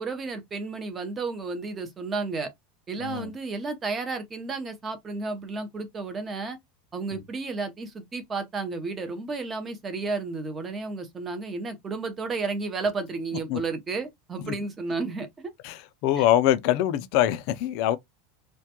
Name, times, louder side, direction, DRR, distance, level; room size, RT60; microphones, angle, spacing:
voice 1, 0.0-2.5 2.9-6.6 6.9-15.5 16.2-16.3, right 4 dB, 20° right, 0.6 m, -32 dB
voice 2, 3.0-3.3 7.1-7.2 13.5-13.6 14.4-14.5 15.6-18.0, left 12 dB, 55° left, 0.3 m, -24 dB
2.2 x 2.1 x 2.8 m
supercardioid pair, 150°, 0 cm